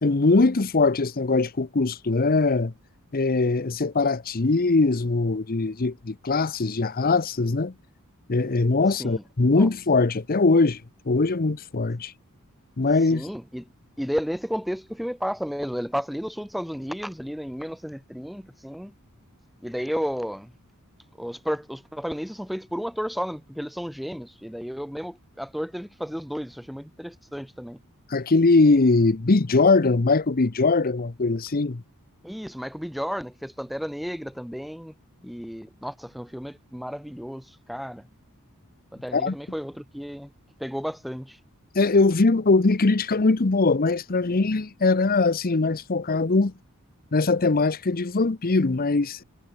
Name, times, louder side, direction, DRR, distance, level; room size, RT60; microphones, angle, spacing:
voice 1, 0.0-2.7 3.1-7.7 8.3-10.8 11.1-12.1 12.8-13.3 28.1-31.8 39.1-39.3 41.7-46.5 47.1-49.2, left 3 dB, 40° left, 0.8 m, -21 dB
voice 2, 8.9-9.2 9.6-9.7 13.0-13.7 14.0-18.9 19.6-20.5 21.2-27.8 32.2-34.9 35.2-38.1 38.9-40.3 40.6-41.4, equal, ahead, 0.4 m, -33 dB
head